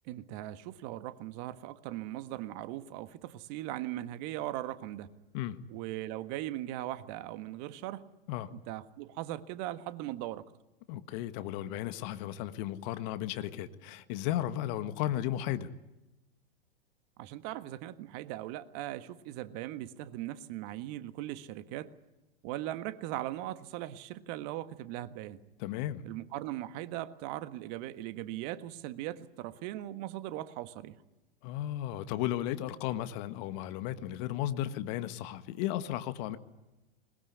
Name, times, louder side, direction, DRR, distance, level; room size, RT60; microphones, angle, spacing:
voice 1, 0.0-5.1 5.7-8.0 8.5-10.4 17.2-21.9 22.4-25.4 26.0-31.0, right 14 dB, 45° right, 1.6 m, -39 dB
voice 2, 10.9-15.7 25.6-26.0 31.4-36.4, left 12 dB, 45° left, 1.5 m, -34 dB
21.0 x 20.5 x 9.5 m
hypercardioid pair, 105°, 30 cm